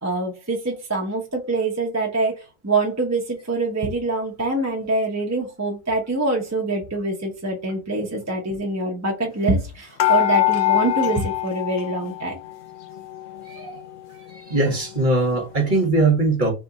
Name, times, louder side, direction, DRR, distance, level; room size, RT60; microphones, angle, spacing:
voice 1, 0.0-12.4, right 2 dB, 15° right, 0.7 m, -25 dB
sound 1, 10.0-12.5 12.8-13.8 14.3-14.4 14.7-14.8, left 16 dB, 60° left, 0.7 m, -23 dB
voice 2, 13.4-13.8 14.3-16.5, right 2 dB, 35° right, 1.6 m, -21 dB
3.5 x 3.3 x 4.0 m
omnidirectional pair, 1.6 m